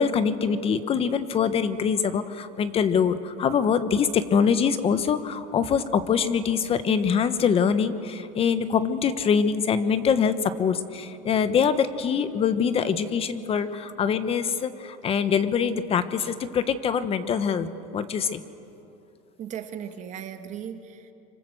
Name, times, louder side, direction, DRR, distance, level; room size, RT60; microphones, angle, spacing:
voice 1, 0.0-17.7 17.9-18.4, left 7 dB, 30° left, 12 dB, 1.3 m, -24 dB
voice 2, 19.4-21.1, right 8 dB, 40° right, 7 dB, 2.0 m, -37 dB
26.0 x 25.0 x 7.8 m, 2.8 s
supercardioid pair, 135°, 19 cm